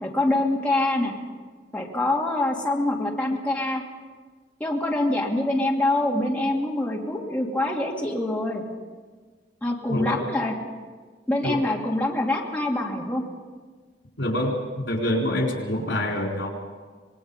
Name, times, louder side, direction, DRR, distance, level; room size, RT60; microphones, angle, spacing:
voice 1, 0.0-1.1 1.7-3.8 4.6-8.6 9.6-10.5 11.3-13.2 15.7-15.9, left 1 dB, 10° left, -2 dB, 2.4 m, -25 dB
voice 2, 9.9-10.2 11.4-11.6 14.2-16.5, left 1 dB, 80° left, 1 dB, 4.0 m, -26 dB
25.5 x 20.5 x 5.5 m, 1.5 s
head